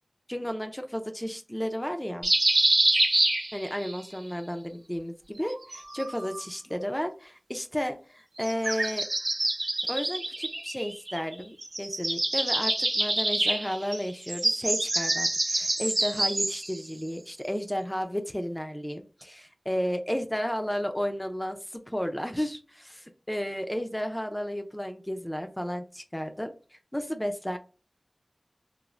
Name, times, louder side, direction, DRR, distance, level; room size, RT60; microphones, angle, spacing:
voice 1, 0.3-2.3 3.5-9.1 9.9-27.6, equal, 10° left, 6 dB, 0.4 m, -33 dB
sound 1, 2.2-4.0 5.4-6.4 8.4-11.3 11.6-16.8, right 2 dB, 55° right, 0.4 m, -27 dB
3.1 x 2.0 x 2.4 m, 0.35 s
wide cardioid pair, 45°, 0 cm